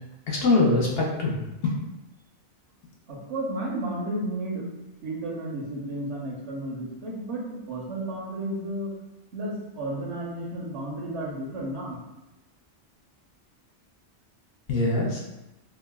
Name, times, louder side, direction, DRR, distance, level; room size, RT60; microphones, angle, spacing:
voice 1, 0.3-1.7 14.7-15.2, left 3 dB, 60° left, -2 dB, 0.8 m, -23 dB
voice 2, 3.1-4.7 5.0-8.9 9.3-12.0, right 1 dB, 75° right, -4 dB, 1.1 m, -32 dB
4.6 x 2.1 x 2.2 m, 0.97 s
omnidirectional pair, 1.2 m